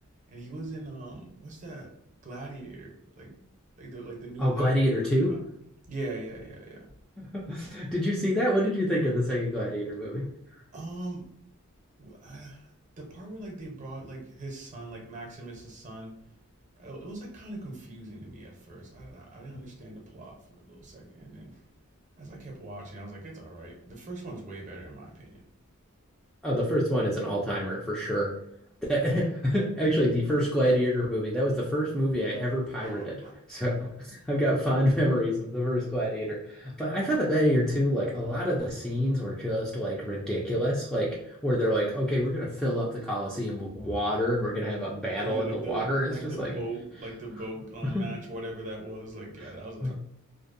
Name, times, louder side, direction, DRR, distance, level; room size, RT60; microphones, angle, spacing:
voice 1, 0.3-1.9 2.2-3.4 3.8-4.9 5.2-5.4 5.9-6.8 10.7-11.2 12.0-16.1 16.8-20.4 20.6-21.6 22.2-25.4 32.8-33.3 45.2-49.9, right 2 dB, 35° right, -1 dB, 0.6 m, -40 dB
voice 2, 4.4-5.4 7.2-10.3 19.5-19.6 26.4-28.3 28.9-33.2 33.5-46.5 47.8-48.1 49.8-49.9, equal, ahead, -5 dB, 0.3 m, -27 dB
2.6 x 2.0 x 2.5 m, 0.74 s
head